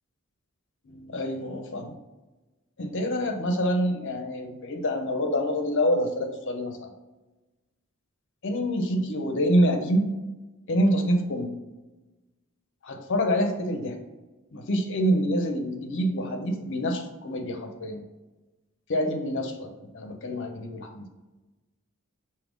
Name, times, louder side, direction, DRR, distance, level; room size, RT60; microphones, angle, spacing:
voice 1, 0.8-1.9 2.8-6.9 8.4-10.1 10.7-11.5 12.8-13.9 14.5-18.0 18.9-21.1, equal, 60° left, 4 dB, 0.7 m, -26 dB
5.0 x 2.8 x 3.5 m, 1.1 s
head